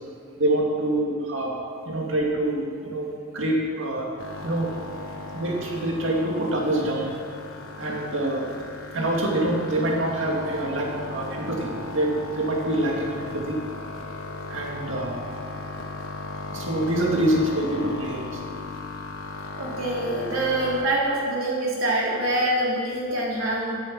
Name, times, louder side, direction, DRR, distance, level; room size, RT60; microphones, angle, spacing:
voice 1, 0.4-1.5 1.9-3.1 3.3-4.1 4.4-4.7 5.3-7.1 7.8-8.5 8.9-13.6 14.5-15.1 16.5-18.4, right 1 dB, 65° right, -1 dB, 2.3 m, -25 dB
sound 1, 4.2-20.8, left 3 dB, 80° left, 1.3 m, -36 dB
voice 2, 19.6-23.7, right 1 dB, 85° right, -4 dB, 3.0 m, -25 dB
9.9 x 8.2 x 7.6 m, 2.2 s
head